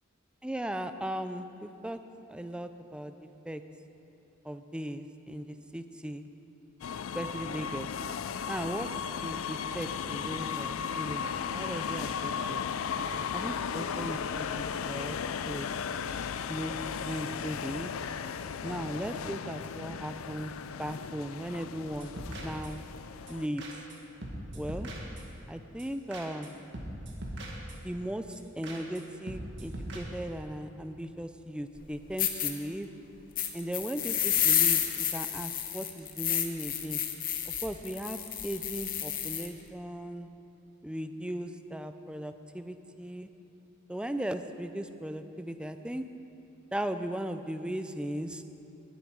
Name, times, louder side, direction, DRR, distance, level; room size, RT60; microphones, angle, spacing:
voice 1, 0.4-2.0 2.3-3.6 4.4-6.3 7.1-7.9 8.5-8.9 9.2-12.6 13.1-15.2 15.5-15.7 16.5-16.7 17.1-17.9 18.6-20.5 20.8-22.1 22.4-22.8 23.3-23.6 24.5-24.9 25.5-26.5 27.8-28.2 28.6-32.9 33.5-37.0 37.5-40.3 40.8-43.3 43.9-46.0 46.7-48.4, right 1 dB, 5° right, 9 dB, 0.4 m, -37 dB
sound 1, 6.8-23.5, left 7 dB, 80° left, 0.4 m, -36 dB
sound 2, 21.9-22.9 23.3-23.4 23.6-24.0 24.2-25.4 25.8-25.9 26.1-26.5 26.7-28.0 28.3-28.4 28.6-29.0 29.3-30.0, right 1 dB, 60° right, 1.8 m, -41 dB
sound 3, 31.7-31.8 32.2-32.5 33.3-39.5, left 10 dB, 45° left, 0.9 m, -30 dB
19.0 x 7.9 x 4.8 m, 2.9 s
head